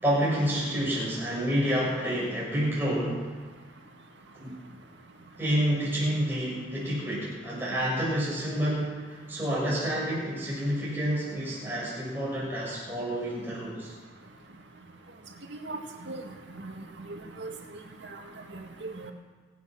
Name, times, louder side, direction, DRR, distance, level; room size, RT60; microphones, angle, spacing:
voice 1, 0.0-3.3 4.3-4.5 5.4-13.9, equal, 10° right, -6 dB, 6.5 m, -29 dB
voice 2, 15.5-16.2 16.6-16.7 17.1-17.5 18.5-19.1, right 2 dB, 75° right, 3 dB, 2.0 m, -38 dB
25.0 x 8.4 x 6.2 m, 1.4 s
head